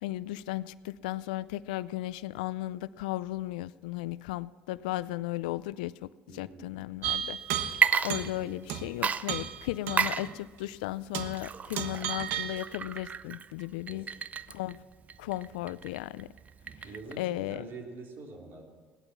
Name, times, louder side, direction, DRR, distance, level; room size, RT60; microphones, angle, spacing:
voice 1, 0.0-7.4 8.0-14.1 14.5-14.8 15.2-16.3 17.2-17.7, left 16 dB, 90° left, 18 dB, 0.4 m, -35 dB
voice 2, 6.3-6.8 8.3-8.6 13.8-14.1 16.8-18.6, right 3 dB, 55° right, 1 dB, 3.4 m, -45 dB
sound 1, 7.0-8.4 8.7-8.9 9.3-10.3 10.6-10.7 11.1-11.5 11.8-12.6, right 9 dB, 75° right, 1.2 m, -34 dB
Water / Liquid, 7.7-8.7 9.0-17.3, right 6 dB, 35° right, 0.5 m, -33 dB
17.0 x 11.5 x 6.0 m, 1.4 s
supercardioid pair, 85°, 4 cm